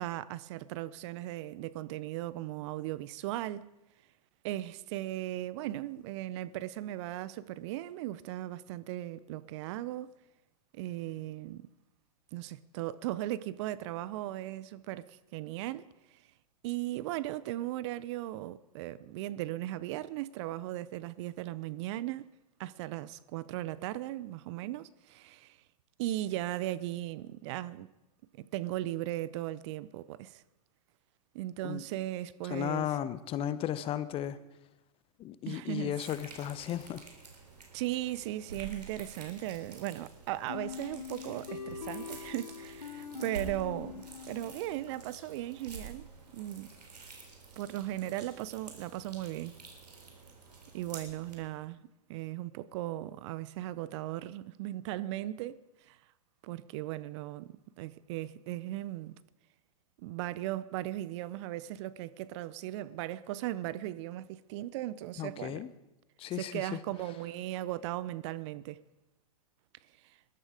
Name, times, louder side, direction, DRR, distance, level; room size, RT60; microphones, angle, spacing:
voice 1, 0.0-3.7 4.4-10.1 10.7-11.7 12.3-15.9 16.1-16.2 16.6-22.3 22.6-25.6 26.0-27.9 28.3-30.4 31.3-32.9 35.5-35.9 37.7-46.7 47.6-49.5 50.7-51.8 52.1-56.0 56.4-59.2 60.0-65.7 66.4-68.8, right 15 dB, 45° right, 0.7 m, -37 dB
voice 2, 32.4-34.4 35.2-37.0 65.2-65.7 66.2-66.8, left 11 dB, 25° left, 0.9 m, -35 dB
sound 1, 36.0-51.4, right 5 dB, 85° right, 4.1 m, -49 dB
sound 2, 40.5-45.1, left 7 dB, 90° left, 1.3 m, -43 dB
21.5 x 12.5 x 5.0 m
hypercardioid pair, 110°, 20 cm